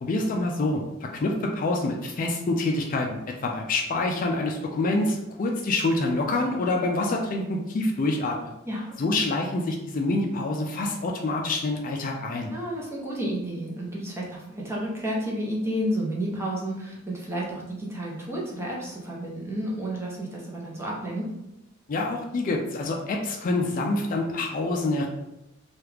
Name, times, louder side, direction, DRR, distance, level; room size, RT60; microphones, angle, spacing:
voice 1, 0.0-8.5 9.0-12.5 21.9-25.1, left 2 dB, 40° left, 1 dB, 0.3 m, -26 dB
voice 2, 12.5-21.3, equal, 15° right, -4 dB, 0.7 m, -31 dB
3.0 x 2.3 x 3.3 m, 0.89 s
head